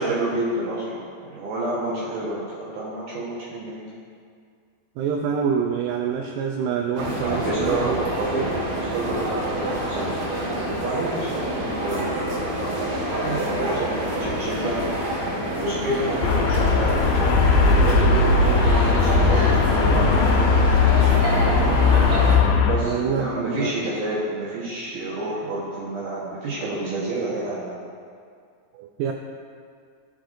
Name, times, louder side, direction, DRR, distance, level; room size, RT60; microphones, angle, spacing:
voice 1, 0.0-3.9 7.2-14.9 15.5-21.5 22.7-27.8, right 2 dB, 70° right, -7 dB, 2.4 m, -29 dB
voice 2, 5.0-8.0 8.4-8.5 22.8-23.7 28.7-29.1, right 7 dB, 85° right, 2 dB, 1.8 m, -26 dB
sound 1, 7.0-22.4, right 1 dB, 50° right, 2.3 m, -27 dB
Traffic noise roadway noise, 16.2-22.8, left 4 dB, 85° left, 2.4 m, -18 dB
14.5 x 6.3 x 2.6 m, 2.2 s
omnidirectional pair, 4.2 m